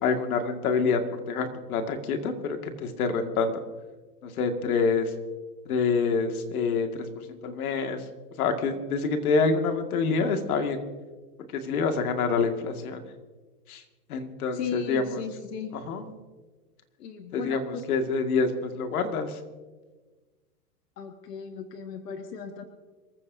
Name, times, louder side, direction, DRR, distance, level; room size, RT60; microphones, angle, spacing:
voice 1, 0.0-3.6 4.2-5.1 5.7-8.0 8.4-10.8 11.5-13.0 13.7-13.8 14.1-15.2 15.7-16.1 17.3-19.4, left 4 dB, 65° left, 5 dB, 2.1 m, -27 dB
voice 2, 14.5-15.8 17.0-17.8 21.0-22.6, left 6 dB, 85° left, 5 dB, 1.8 m, -36 dB
27.0 x 14.5 x 2.7 m, 1.3 s
supercardioid pair, 155°, 47 cm